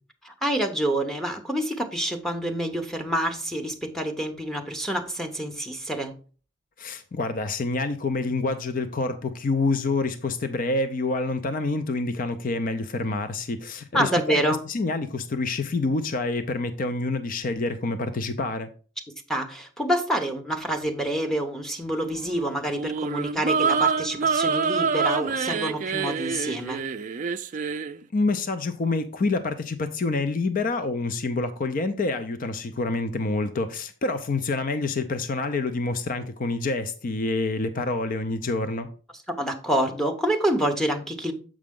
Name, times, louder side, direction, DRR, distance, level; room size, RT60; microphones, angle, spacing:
voice 1, 0.2-6.2 13.9-14.6 19.3-26.8 39.4-41.3, right 1 dB, ahead, 0.9 m, -27 dB
voice 2, 6.8-14.4 14.7-18.7 28.1-38.9, left 3 dB, 45° left, 0.5 m, -27 dB
sound 1, 22.7-28.0, right 5 dB, 40° right, 0.4 m, -26 dB
7.5 x 4.9 x 3.6 m
head